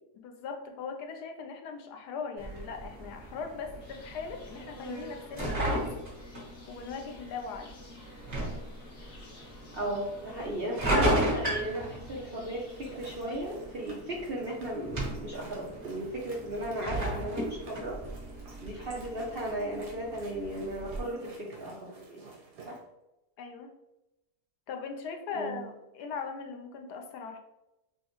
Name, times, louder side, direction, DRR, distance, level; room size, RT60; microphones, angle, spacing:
voice 1, 0.1-5.9 6.7-7.8 23.4-23.7 24.7-27.4, left 5 dB, 80° left, 4 dB, 1.2 m, -39 dB
sound 1, 2.4-21.0, right 1 dB, 40° right, 1.6 m, -36 dB
Insect, 3.8-13.6, equal, 45° left, 1.1 m, -51 dB
voice 2, 9.7-18.0 18.6-22.2 22.7-22.8 25.3-25.6, right 1 dB, 55° right, -3 dB, 0.6 m, -36 dB
sound 2, 12.6-22.8, right 4 dB, 85° right, 1.6 m, -52 dB
6.3 x 2.1 x 3.0 m, 0.92 s
omnidirectional pair, 1.7 m